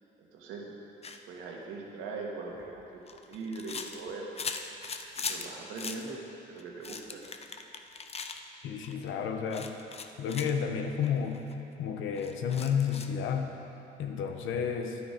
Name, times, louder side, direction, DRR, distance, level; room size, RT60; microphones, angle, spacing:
voice 1, 0.2-0.8 1.3-4.3 5.3-6.2 6.5-7.2, right 3 dB, 85° right, -2 dB, 1.7 m, -41 dB
sound 1, 1.0-1.2 2.5-5.5 5.8-6.0 6.6-8.4 8.8-9.1 9.5-10.5 11.0-11.1 11.3-11.5 12.2-13.2, left 5 dB, 30° left, 0.6 m, -40 dB
voice 2, 8.6-9.7 10.2-11.5 11.8-13.6 14.0-15.0, left 7 dB, 80° left, 5 dB, 0.9 m, -31 dB
10.0 x 8.8 x 5.1 m, 3.0 s
cardioid pair, 90°, 20 cm